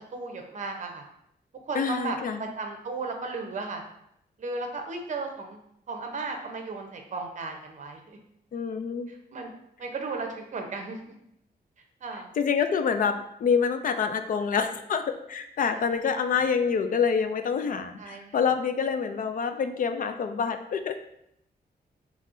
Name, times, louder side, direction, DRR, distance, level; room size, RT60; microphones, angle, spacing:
voice 1, 0.1-1.0 1.6-3.8 4.4-5.6 5.9-8.2 9.1-9.5 9.8-11.1 12.0-12.3 15.7-16.0 18.0-18.4, right 3 dB, 45° right, 3 dB, 0.7 m, -35 dB
voice 2, 1.7-2.5 8.5-9.1 12.4-15.0 15.3-21.0, left 6 dB, 55° left, 8 dB, 0.4 m, -27 dB
5.2 x 3.1 x 2.6 m, 0.76 s
wide cardioid pair, 140°, 17 cm